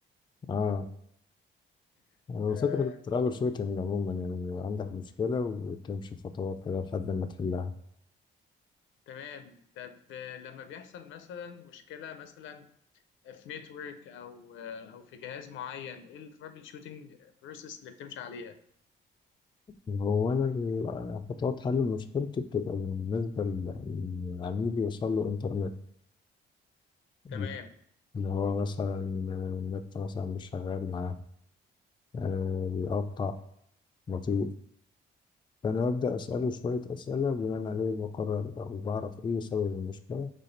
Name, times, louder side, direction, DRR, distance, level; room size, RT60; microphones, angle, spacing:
voice 1, 0.5-0.9 2.3-6.1 6.3-7.7 19.9-25.7 27.2-27.5 28.1-31.2 32.1-33.3 34.1-34.5 35.6-40.3, left 5 dB, 25° left, 7 dB, 0.4 m, -31 dB
voice 2, 2.5-2.9 9.1-12.7 13.2-18.6 27.3-27.7, left 7 dB, 80° left, 9 dB, 0.5 m, -43 dB
4.2 x 3.2 x 3.8 m, 0.72 s
cardioid pair, 90°, 20 cm